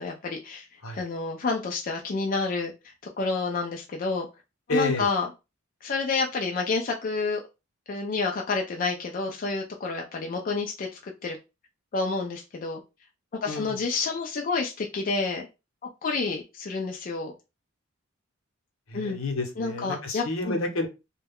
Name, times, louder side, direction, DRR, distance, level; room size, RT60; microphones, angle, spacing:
voice 1, 0.0-0.7 0.9-4.3 4.7-5.3 5.8-7.4 7.9-11.4 11.9-12.8 13.4-15.5 16.0-17.3 18.9-19.2 19.6-20.6, left 4 dB, 40° left, 0.4 m, -29 dB
voice 2, 4.7-5.1 13.5-13.8 18.9-20.9, left 2 dB, 70° left, 0.8 m, -29 dB
2.3 x 2.1 x 3.4 m
head